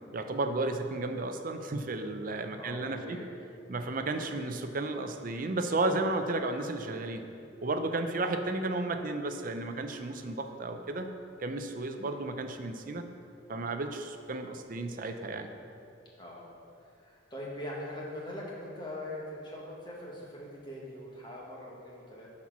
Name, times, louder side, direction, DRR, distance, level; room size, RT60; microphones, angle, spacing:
voice 1, 0.1-3.2 3.7-7.2 7.6-11.1 11.4-13.1 13.5-15.5, right 2 dB, 45° right, 7 dB, 0.6 m, -33 dB
voice 2, 2.6-3.3 4.2-4.4 12.0-12.2 16.2-16.5 16.8-22.3, left 1 dB, 25° left, -4 dB, 1.6 m, -42 dB
10.0 x 4.3 x 6.1 m, 2.5 s
head